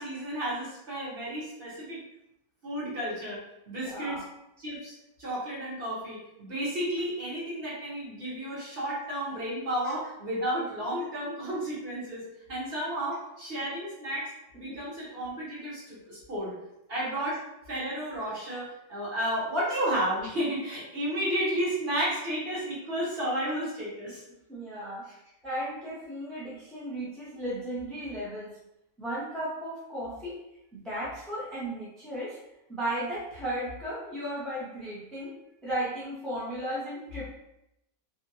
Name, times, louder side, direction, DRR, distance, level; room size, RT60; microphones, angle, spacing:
voice 1, 0.0-2.0 2.6-3.4 3.7-4.2 4.6-4.9 5.2-12.2 12.5-14.3 14.6-16.5 16.9-17.4 17.7-24.2, right 1 dB, 45° right, -8 dB, 1.2 m, -32 dB
voice 2, 3.8-4.3 14.6-14.8 24.5-25.1 25.4-28.5 29.0-30.4 30.7-32.4 32.7-35.3 35.6-37.4, right 1 dB, ahead, -8 dB, 0.3 m, -35 dB
2.8 x 2.4 x 2.6 m, 0.85 s
omnidirectional pair, 1.6 m